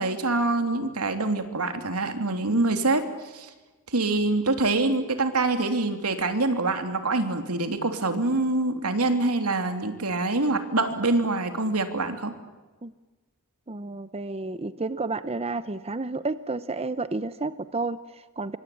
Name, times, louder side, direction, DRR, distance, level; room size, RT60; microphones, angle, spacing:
voice 1, 0.0-3.0 3.3-3.5 3.9-12.3, right 2 dB, 90° right, 7 dB, 3.1 m, -25 dB
voice 2, 13.7-18.6, right 3 dB, 25° right, 13 dB, 0.7 m, -31 dB
25.5 x 24.0 x 8.6 m, 1.2 s
head